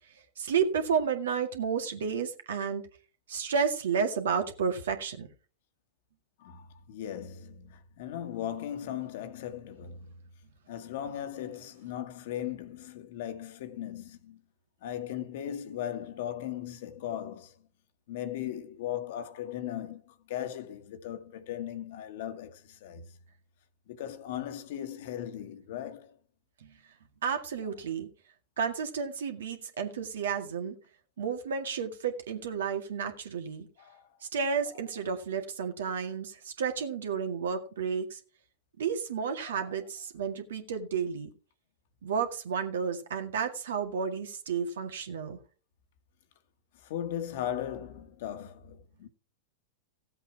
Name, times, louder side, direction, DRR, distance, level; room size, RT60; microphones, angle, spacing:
voice 1, 0.4-2.8 3.3-5.3 26.6-26.7 27.2-28.1 28.6-30.8 31.2-33.7 34.3-38.2 38.8-41.3 42.0-45.4, right 6 dB, 75° right, 1.9 m, -31 dB
voice 2, 6.4-10.1 10.7-14.4 14.8-17.5 18.1-23.1 23.9-26.1 33.8-34.0 39.4-39.7 46.8-49.1, left 10 dB, 60° left, 1.6 m, -38 dB
15.5 x 8.0 x 4.7 m
hypercardioid pair, 100°, 0 cm